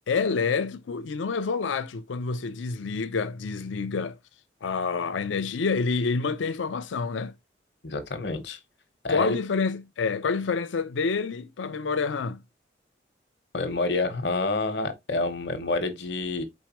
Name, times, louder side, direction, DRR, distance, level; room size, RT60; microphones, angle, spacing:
voice 1, 0.1-4.2 4.6-7.3 9.1-12.4, left 4 dB, 85° left, 0.5 m, -28 dB
voice 2, 7.8-8.6 9.0-9.4 13.5-16.4, left 3 dB, 70° left, 1.0 m, -28 dB
4.6 x 3.8 x 2.9 m
head